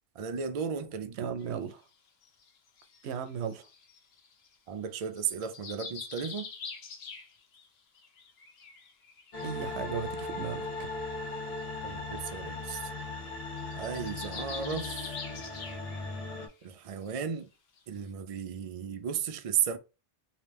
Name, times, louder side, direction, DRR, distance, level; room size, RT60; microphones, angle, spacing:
voice 1, 0.1-1.3 4.7-6.5 11.8-12.9 13.7-15.1 16.6-17.5 17.9-19.8, right 7 dB, 55° right, 0.4 m, -34 dB
voice 2, 1.2-1.8 3.0-3.7 9.4-10.6, right 7 dB, 75° right, 0.8 m, -35 dB
sound 1, 1.4-1.5 2.2-4.5 5.0-7.7 7.9-9.5 10.0-10.1 10.3-10.5 11.6-11.7 11.9-12.0 12.3-12.5 12.9-13.0 13.3-16.2 16.5-16.6 17.1-17.2 17.8-17.9, left 5 dB, 70° left, 1.0 m, -45 dB
sound 2, 9.3-16.5, left 3 dB, 40° left, 0.8 m, -38 dB
3.1 x 2.9 x 3.3 m
omnidirectional pair, 1.1 m